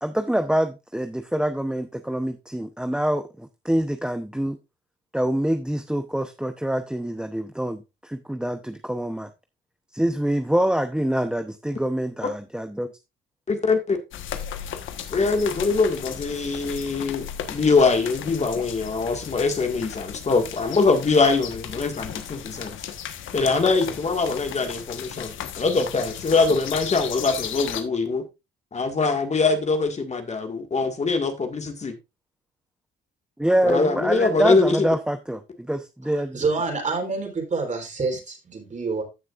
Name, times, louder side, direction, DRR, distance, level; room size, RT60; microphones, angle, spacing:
voice 1, 0.0-4.6 5.1-9.3 9.9-12.9 33.4-36.4, right 1 dB, 5° right, 8 dB, 0.8 m, -25 dB
voice 2, 13.5-14.0 15.1-22.8 23.3-28.3 28.7-31.9 33.6-34.9, left 4 dB, 35° left, 6 dB, 1.8 m, -23 dB
sound 1, 14.1-27.8, left 9 dB, 80° left, 1.3 m, -35 dB
voice 3, 36.0-39.0, right 4 dB, 40° right, 3 dB, 3.8 m, -27 dB
14.5 x 6.3 x 2.5 m, 0.25 s
cardioid pair, 90°, 20 cm